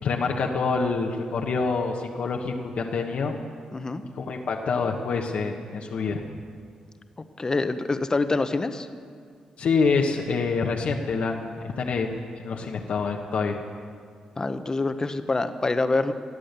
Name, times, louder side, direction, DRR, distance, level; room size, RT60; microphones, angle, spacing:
voice 1, 0.0-3.3 4.2-6.2 9.6-13.6, left 4 dB, 70° left, 1 dB, 1.3 m, -26 dB
voice 2, 3.7-4.0 7.4-8.9 14.4-16.1, left 3 dB, 30° left, 9 dB, 1.0 m, -25 dB
17.5 x 8.7 x 8.2 m, 2.1 s
cardioid pair, 70°, 2 cm